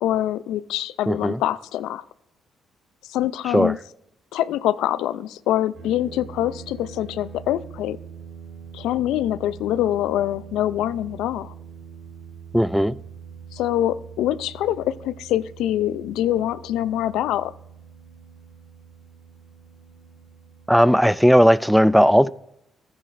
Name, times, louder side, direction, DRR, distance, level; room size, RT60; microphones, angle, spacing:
voice 1, 0.0-2.0 3.1-3.8 4.3-8.0 8.7-11.5 13.5-17.5, left 12 dB, 90° left, 0.4 m, -24 dB
voice 2, 1.1-1.4 3.5-3.7 12.5-13.0 20.7-22.3, equal, ahead, 0.3 m, -16 dB
sound 1, 5.7-21.3, right 7 dB, 35° right, 4.2 m, -43 dB
14.0 x 10.0 x 2.5 m
cardioid pair, 90°, 0 cm